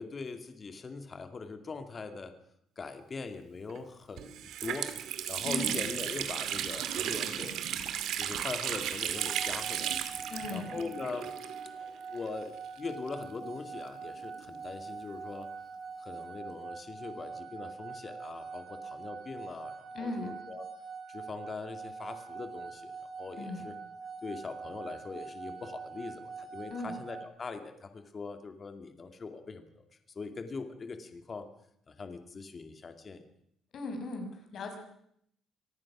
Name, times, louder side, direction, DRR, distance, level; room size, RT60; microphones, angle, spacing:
voice 1, 0.0-2.3 2.8-4.9 5.3-7.9 8.2-10.0 10.5-11.4 11.8-15.5 16.0-20.6 21.1-22.9 23.2-23.7 24.2-29.8 30.2-31.5 31.9-33.2, left 4 dB, 30° left, 7 dB, 2.4 m, -42 dB
Water tap faucet, 3.7-3.8 4.2-11.9 12.1-12.2 13.1-14.6, right 10 dB, 75° right, 2.3 m, -35 dB
voice 2, 5.4-5.8 10.3-10.7 19.9-20.3 23.3-23.6 26.7-27.0 33.7-34.8, left 2 dB, 50° left, 4 dB, 6.1 m, -38 dB
sound 1, 9.1-27.2, right 5 dB, 40° right, 6.0 m, -44 dB
25.5 x 18.5 x 6.2 m, 0.71 s
cardioid pair, 135°, 0 cm